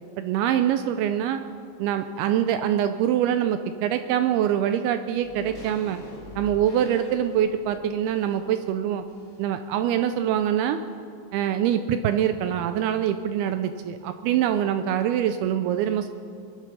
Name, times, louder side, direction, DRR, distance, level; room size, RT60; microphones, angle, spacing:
voice 1, 0.2-1.4 1.8-6.0 6.4-9.0 9.4-10.8 11.3-16.1, right 10 dB, 80° right, 9 dB, 2.3 m, -24 dB
sound 1, 5.2-9.7 10.0-10.1, left 2 dB, 50° left, 0.8 m, -45 dB
22.5 x 11.5 x 5.5 m, 2.5 s
omnidirectional pair, 4.8 m